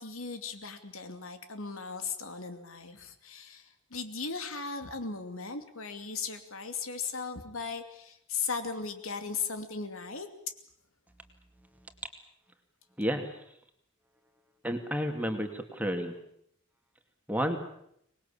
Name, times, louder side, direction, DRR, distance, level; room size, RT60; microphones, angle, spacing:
voice 1, 0.0-10.3, left 5 dB, 75° left, 7 dB, 2.6 m, -37 dB
voice 2, 13.0-13.4 14.6-16.2 17.3-17.6, equal, 10° right, 5 dB, 2.4 m, -31 dB
25.0 x 20.0 x 8.6 m, 0.72 s
head